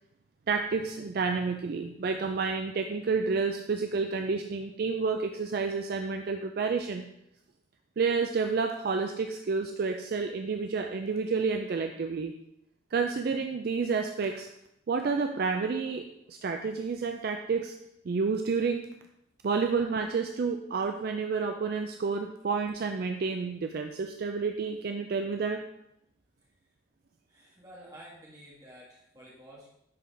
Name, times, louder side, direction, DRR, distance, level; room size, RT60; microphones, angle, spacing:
voice 1, 0.5-7.0 8.0-12.3 12.9-14.5 14.9-17.7 18.1-18.9 19.4-25.6, right 4 dB, 50° right, 5 dB, 0.3 m, -30 dB
voice 2, 27.3-29.7, right 1 dB, 20° right, -5 dB, 1.7 m, -51 dB
9.9 x 3.8 x 3.3 m, 0.80 s
head